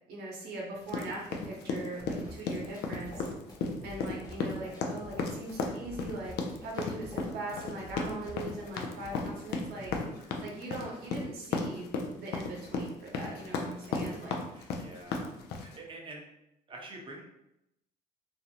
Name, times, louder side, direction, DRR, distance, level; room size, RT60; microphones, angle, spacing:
voice 1, 0.1-3.3 3.8-9.9 10.4-11.9 12.2-14.4, right 2 dB, 70° right, -2 dB, 0.8 m, -41 dB
sound 1, 0.9-15.8, left 4 dB, 75° left, 0.4 m, -34 dB
sound 2, 2.0-10.0, left 1 dB, 20° left, 0.7 m, -49 dB
voice 2, 14.5-16.3 16.7-17.2, right 2 dB, 30° right, 0 dB, 0.6 m, -47 dB
2.5 x 2.1 x 2.8 m, 0.84 s
cardioid pair, 110°, 17 cm